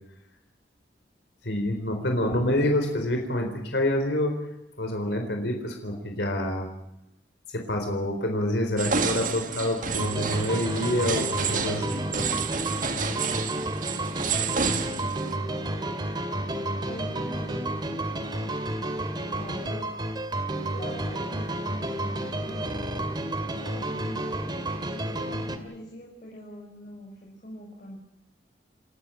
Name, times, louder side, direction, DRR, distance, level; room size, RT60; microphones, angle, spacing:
voice 1, 1.4-4.3 4.8-6.7 7.5-12.0, left 1 dB, 70° left, 3 dB, 4.1 m, -27 dB
sound 1, 8.8-15.4, right 5 dB, 45° right, 1.9 m, -30 dB
sound 2, 9.9-25.6, right 1 dB, 25° right, 2.2 m, -31 dB
voice 2, 15.3-15.9 16.1-17.9 19.1-19.9 20.7-23.1 23.6-28.0, equal, 45° left, -2 dB, 5.7 m, -44 dB
29.5 x 13.5 x 9.0 m, 0.85 s
head